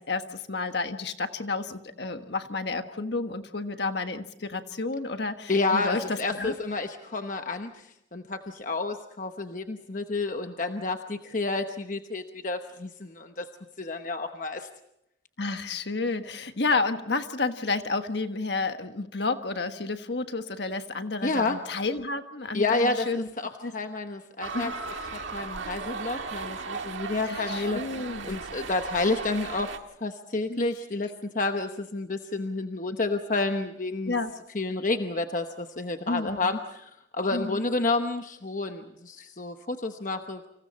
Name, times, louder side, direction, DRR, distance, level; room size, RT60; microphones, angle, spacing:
voice 1, 0.0-6.5 15.4-23.3 23.6-23.7 24.5-24.8 27.2-28.4 30.5-30.7 34.1-34.3 36.1-36.5 37.3-37.6, left 3 dB, 60° left, 8 dB, 1.4 m, -31 dB
voice 2, 5.5-13.5 13.8-14.7 21.2-21.6 22.5-24.7 25.1-27.8 28.3-29.7 30.0-34.2 34.5-40.5, left 3 dB, 40° left, 6 dB, 1.0 m, -30 dB
sound 1, 24.4-29.8, right 4 dB, 80° right, 1.8 m, -36 dB
29.5 x 26.0 x 4.2 m, 0.80 s
head